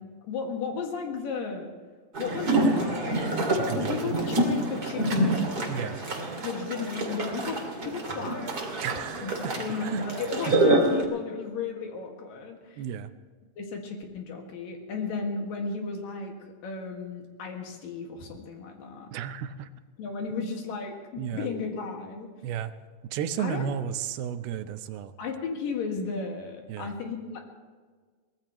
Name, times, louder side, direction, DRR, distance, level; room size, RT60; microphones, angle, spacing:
voice 1, 0.2-1.7 2.2-3.3 3.7-5.8 6.4-8.8 9.2-9.3 9.6-12.8 13.6-19.1 20.0-22.3 23.4-23.7 25.2-27.4, left 5 dB, 70° left, 2 dB, 3.6 m, -34 dB
sound 1, 2.1-11.0, right 2 dB, 30° right, 2.4 m, -27 dB
voice 2, 3.5-4.0 5.7-6.0 8.8-9.5 9.8-10.0 10.5-10.6 12.8-13.1 19.1-19.7 20.4-20.5 21.2-21.5 22.4-22.7 23.1-25.1 26.7-26.9, right 9 dB, 85° right, 10 dB, 2.7 m, -33 dB
23.5 x 18.0 x 3.1 m, 1.5 s
omnidirectional pair, 4.3 m